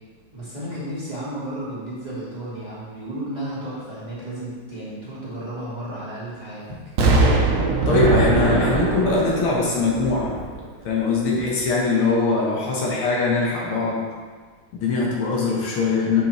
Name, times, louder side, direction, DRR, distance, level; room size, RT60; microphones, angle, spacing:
voice 1, 0.3-6.6, right 1 dB, 20° right, -11 dB, 1.9 m, -33 dB
Explosion, 7.0-10.9 11.4-11.5, right 3 dB, 85° right, 0.7 m, -21 dB
voice 2, 7.9-10.3 10.9-14.0 14.7-16.2, left 4 dB, 75° left, -3 dB, 2.0 m, -22 dB
7.2 x 5.4 x 3.1 m, 1.5 s
omnidirectional pair, 2.4 m